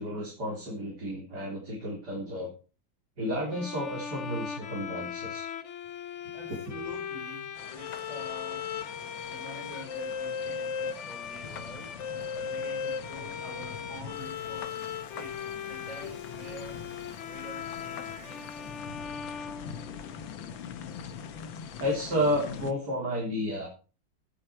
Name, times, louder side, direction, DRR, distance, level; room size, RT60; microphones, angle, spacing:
voice 1, 0.0-2.5 3.2-5.5 21.8-23.7, equal, 55° right, -2 dB, 4.0 m, -31 dB
sound 1, 3.5-20.3, left 7 dB, 55° left, 0.9 m, -38 dB
voice 2, 6.3-8.7 9.3-19.2, right 1 dB, 20° right, 0 dB, 4.7 m, -47 dB
sound 2, 7.5-22.7, left 7 dB, 85° left, 1.8 m, -44 dB
17.0 x 8.3 x 4.5 m, 0.35 s
omnidirectional pair, 2.1 m